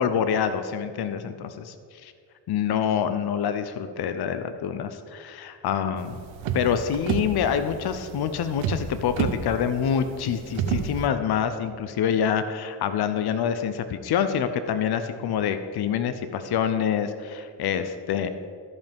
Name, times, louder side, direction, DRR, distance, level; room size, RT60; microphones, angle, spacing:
voice 1, 0.0-2.1 2.5-6.2 6.5-18.3, left 8 dB, 55° left, 10 dB, 0.7 m, -26 dB
sound 1, 6.0-11.1, right 7 dB, 90° right, 0.8 m, -30 dB
14.0 x 5.5 x 3.5 m, 2.2 s
supercardioid pair, 65°, 45 cm